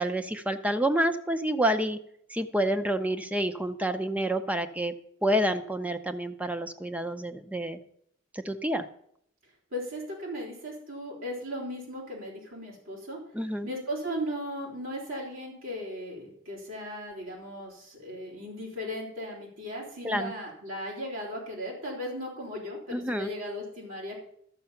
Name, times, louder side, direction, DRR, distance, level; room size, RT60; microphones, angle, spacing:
voice 1, 0.0-2.0 2.3-4.9 5.2-7.8 8.3-8.8 13.3-13.7 20.0-20.3 22.9-23.3, right 1 dB, 5° right, 9 dB, 0.5 m, -28 dB
voice 2, 9.7-13.2 13.6-24.2, equal, 90° right, -4 dB, 3.6 m, -37 dB
13.0 x 6.8 x 5.6 m, 0.70 s
head